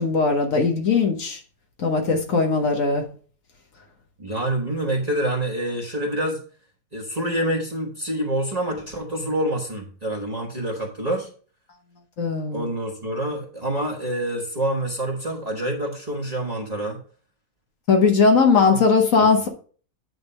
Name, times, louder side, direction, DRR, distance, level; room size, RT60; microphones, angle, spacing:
voice 1, 0.0-1.4 1.8-3.0 12.2-12.7 17.9-19.5, left 4 dB, 75° left, 3 dB, 1.5 m, -19 dB
voice 2, 4.2-6.4 6.9-11.3 12.5-17.0 18.7-18.8 19.2-19.5, right 1 dB, 30° right, -3 dB, 1.3 m, -27 dB
9.4 x 3.5 x 5.4 m, 0.43 s
omnidirectional pair, 1.4 m